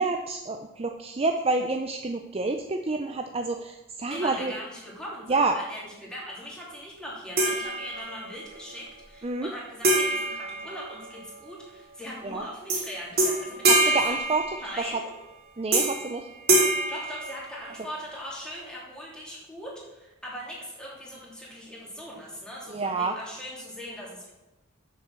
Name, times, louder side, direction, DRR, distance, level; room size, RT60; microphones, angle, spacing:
voice 1, 0.0-4.5 5.3-5.6 9.2-9.5 12.2-12.4 13.7-14.5 14.8-15.0 15.6-16.3 22.7-23.2, right 3 dB, 25° right, 5 dB, 0.5 m, -28 dB
voice 2, 4.1-14.2 14.6-15.1 16.9-24.3, equal, 5° left, -5 dB, 2.9 m, -40 dB
sound 1, 7.4-8.4 9.8-11.4 12.7-12.9 13.2-15.0 15.7-16.1 16.5-17.9, right 2 dB, 45° right, 2.7 m, -25 dB
7.7 x 6.8 x 7.2 m, 0.99 s
head